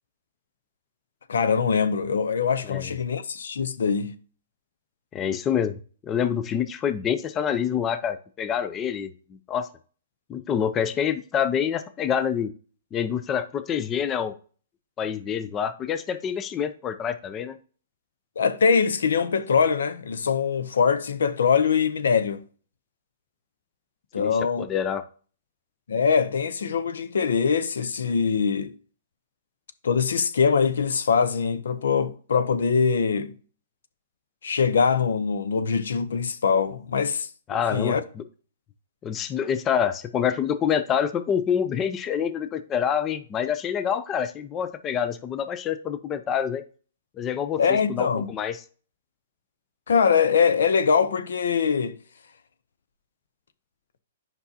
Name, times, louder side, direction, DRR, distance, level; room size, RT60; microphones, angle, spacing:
voice 1, 1.3-4.1 18.4-22.4 24.1-24.7 25.9-28.7 29.8-33.3 34.4-37.3 37.7-38.0 47.6-48.3 49.9-51.9, left 6 dB, 85° left, 0.7 m, -23 dB
voice 2, 5.1-9.7 10.3-12.5 12.9-14.3 15.0-17.6 24.2-25.0 37.5-38.2 39.0-46.6 47.2-48.6, left 8 dB, 20° left, 0.5 m, -27 dB
8.1 x 5.4 x 2.8 m
hypercardioid pair, 155°, 0 cm